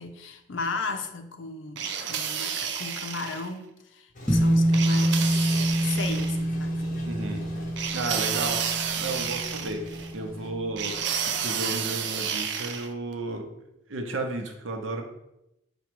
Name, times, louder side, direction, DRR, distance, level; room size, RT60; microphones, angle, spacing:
voice 1, 0.0-6.9, left 4 dB, 70° left, 7 dB, 0.5 m, -36 dB
sound 1, 1.8-3.5 4.7-6.4 7.8-10.1 10.8-12.9, right 7 dB, 65° right, 0.4 m, -31 dB
Toilet flush, 4.1-10.5, left 1 dB, 45° left, 0.9 m, -44 dB
sound 2, 4.3-10.9, right 1 dB, 5° left, 0.9 m, -26 dB
voice 2, 7.0-7.4 7.9-8.6 9.0-9.8 10.1-11.0 11.3-13.5 13.9-15.0, right 2 dB, 90° right, 4 dB, 0.7 m, -33 dB
5.0 x 2.3 x 4.6 m, 0.86 s
head